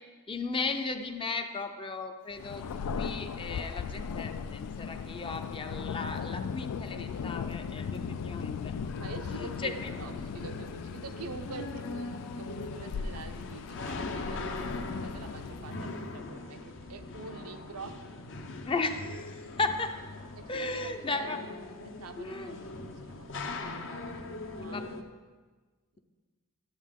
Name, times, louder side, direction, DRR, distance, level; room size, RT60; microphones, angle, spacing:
voice 1, 0.3-2.6 2.9-9.0 9.4-9.7 18.7-19.2 19.6-19.9 20.5-21.4 22.2-22.6 24.7-24.9, left 3 dB, 25° left, 7 dB, 0.5 m, -35 dB
Thunder, 2.3-16.0, left 6 dB, 90° left, 0.4 m, -38 dB
sound 1, 7.9-25.0, left 2 dB, 60° left, 0.7 m, -41 dB
voice 2, 9.0-18.0 20.4-24.9, right 4 dB, 75° right, 7 dB, 0.6 m, -46 dB
11.5 x 7.3 x 3.6 m, 1.4 s
head